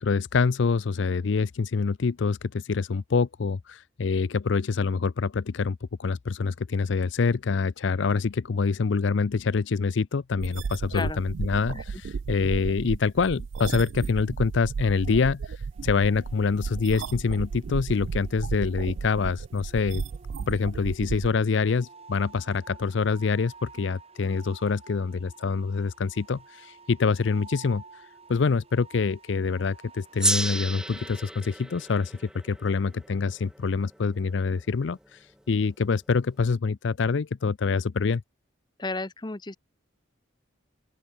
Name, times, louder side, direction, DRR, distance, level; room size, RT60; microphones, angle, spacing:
voice 1, 0.0-15.4 15.8-20.0 20.5-27.8 28.3-32.1 32.4-35.2 35.5-38.2, left 4 dB, 60° left, 0.5 m, -26 dB
sound 1, 10.4-21.3, right 5 dB, 65° right, 0.4 m, -34 dB
sound 2, 15.7-31.2, right 4 dB, 30° right, 1.9 m, -52 dB
Gong, 30.2-34.9, right 1 dB, 5° right, 1.4 m, -32 dB
voice 2, 38.8-39.6, left 3 dB, 20° left, 0.8 m, -32 dB
open air
head